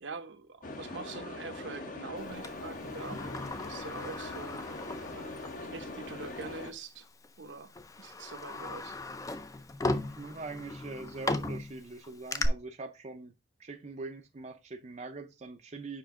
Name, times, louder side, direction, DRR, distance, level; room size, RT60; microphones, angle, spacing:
voice 1, 0.0-3.2 3.7-4.6 5.1-5.4 5.6-7.1 7.4-9.0, right 3 dB, 70° right, 0.8 m, -44 dB
sound 1, 0.6-6.7, left 2 dB, 45° left, 0.8 m, -42 dB
Sliding door, 2.4-5.7 6.0-6.1 7.1-7.3 7.7-12.5, left 2 dB, 15° left, 0.4 m, -37 dB
voice 2, 10.0-13.3 13.6-16.0, right 3 dB, 35° right, 0.5 m, -43 dB
5.6 x 5.1 x 3.6 m
head